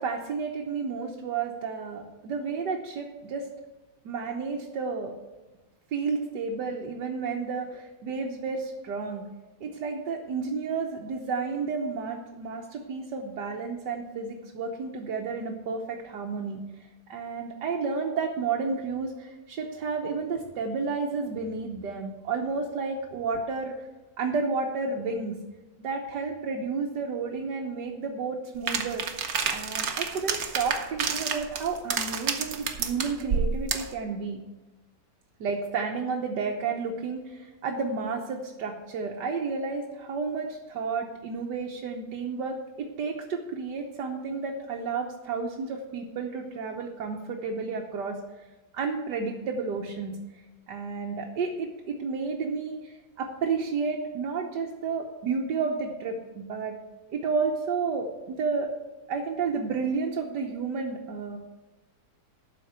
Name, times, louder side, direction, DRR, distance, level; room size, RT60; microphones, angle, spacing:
voice 1, 0.0-3.4 4.0-5.1 5.9-9.2 9.6-16.6 17.1-23.7 24.2-25.4 25.8-29.0 29.5-34.4 35.4-48.2 48.7-50.2 50.7-56.8 57.1-58.7 59.1-61.4, right 4 dB, 85° right, 0 dB, 1.6 m, -31 dB
sound 1, 28.7-33.9, right 6 dB, 60° right, 1.4 m, -29 dB
12.0 x 4.6 x 8.0 m, 1.1 s
omnidirectional pair, 1.8 m